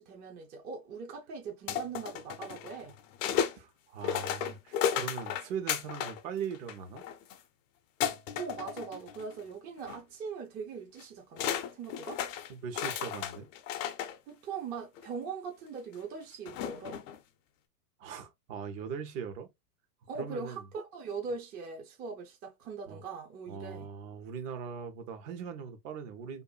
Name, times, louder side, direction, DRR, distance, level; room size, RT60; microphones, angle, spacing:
voice 1, 0.0-3.0 8.4-12.2 14.3-17.0 20.1-23.9, right 5 dB, 20° right, 0.5 m, -41 dB
sound 1, 1.7-3.6 4.0-6.2 6.5-7.4 8.0-9.4 9.8-10.0 11.0-11.1 11.4-14.2 15.0-15.1 16.5-17.2, left 9 dB, 55° left, 0.6 m, -34 dB
voice 2, 3.5-7.0 12.5-13.5 18.0-19.5 20.1-20.7 22.9-23.0 23.5-26.4, right 7 dB, 55° right, 0.9 m, -40 dB
2.6 x 2.4 x 2.2 m
hypercardioid pair, 110°, 47 cm